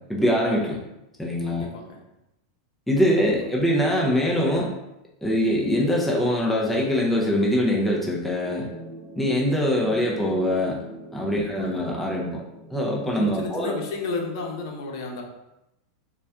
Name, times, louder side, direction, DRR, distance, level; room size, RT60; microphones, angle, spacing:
voice 1, 0.1-0.8 1.2-1.7 2.9-4.7 5.2-8.7 9.2-10.8 11.1-12.4 12.7-13.7, equal, 5° left, -3 dB, 0.5 m, -23 dB
voice 2, 1.5-2.0 3.1-3.3 11.3-11.8 13.0-15.2, left 3 dB, 65° left, 1 dB, 0.8 m, -33 dB
sound 1, 8.4-14.6, right 1 dB, 15° right, 0.9 m, -43 dB
4.0 x 2.3 x 3.4 m, 0.90 s
supercardioid pair, 140°, 3 cm